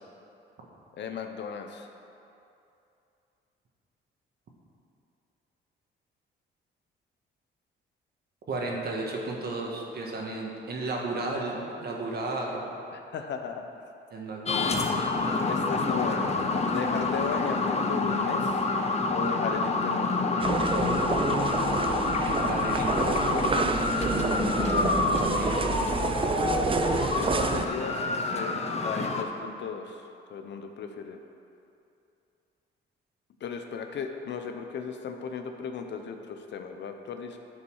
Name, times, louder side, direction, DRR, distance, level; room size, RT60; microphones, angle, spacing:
voice 1, 1.0-1.9 12.9-13.7 15.5-18.6 19.1-20.6 26.6-30.0 30.3-31.2 33.4-37.4, left 6 dB, 65° left, 5 dB, 0.7 m, -36 dB
voice 2, 8.5-12.6 14.1-15.0 22.2-25.8, right 2 dB, 55° right, -1 dB, 1.6 m, -34 dB
sound 1, 14.5-29.2, left 3 dB, 35° left, 0.8 m, -28 dB
sound 2, 20.4-27.7, right 4 dB, 25° right, 0.5 m, -28 dB
9.9 x 5.5 x 4.7 m, 2.7 s
cardioid pair, 90°, 20 cm